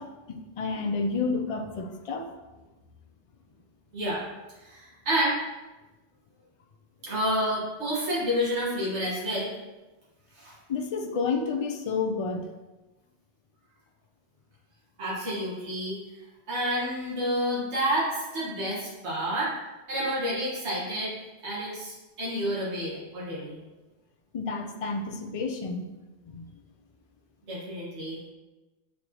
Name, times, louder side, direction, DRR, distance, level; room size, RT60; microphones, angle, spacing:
voice 1, 0.0-2.3 10.7-12.5 24.3-25.9 26.3-26.5, left 4 dB, 50° left, 4 dB, 0.4 m, -30 dB
voice 2, 4.6-5.4 7.0-9.5 10.4-10.5 15.0-16.0 16.5-19.5 19.9-21.1 21.4-23.6 27.5-28.2, equal, 65° right, -7 dB, 1.7 m, -29 dB
7.8 x 4.2 x 2.9 m, 1.1 s
omnidirectional pair, 1.3 m